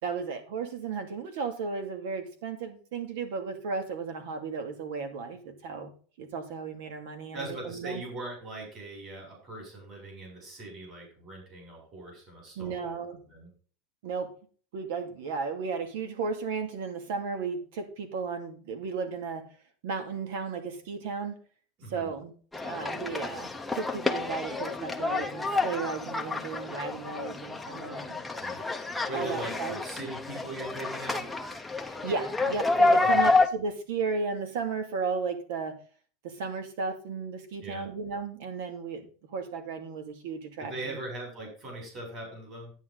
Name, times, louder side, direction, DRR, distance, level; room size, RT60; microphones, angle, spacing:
voice 1, 0.0-5.9 6.2-8.0 12.6-13.2 14.0-14.3 14.7-19.5 19.8-21.4 21.9-22.3 22.6-28.2 29.1-29.8 31.8-35.8 36.2-41.0, right 5 dB, 75° right, 7 dB, 2.6 m, -34 dB
voice 2, 7.3-13.0 13.3-13.5 21.8-22.1 28.4-28.6 29.1-31.3 33.1-33.3 37.6-37.9 40.6-42.7, right 2 dB, 30° right, 1 dB, 7.0 m, -40 dB
sound 1, 22.5-33.5, left 3 dB, 5° left, 0.8 m, -29 dB
10.5 x 9.6 x 4.0 m, 0.40 s
supercardioid pair, 165°, 0 cm